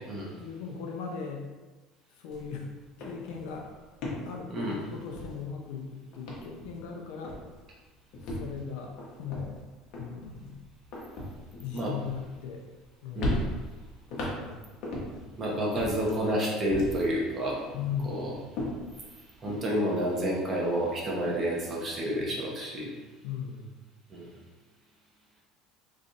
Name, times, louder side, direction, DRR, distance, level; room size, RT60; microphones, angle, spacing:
voice 1, 0.4-1.4 2.2-2.7 3.0-3.7 4.2-7.3 8.2-8.9 9.2-9.5 10.0-10.6 11.6-12.6 13.0-13.5 14.1-14.7 17.7-18.4 23.2-23.8, left 6 dB, 80° left, 1 dB, 0.5 m, -38 dB
sound 1, 2.3-2.5 2.8-5.8 6.1-7.0 7.2-7.6 8.1-12.8 13.2-15.3 15.7-17.2 17.5-19.6, left 1 dB, 60° left, 1.0 m, -37 dB
voice 2, 13.2-13.5 15.4-17.6 18.0-18.3 19.4-22.9 24.1-24.3, equal, 30° right, -3 dB, 1.0 m, -29 dB
3.2 x 2.5 x 4.0 m, 1.2 s
cardioid pair, 125°, 0 cm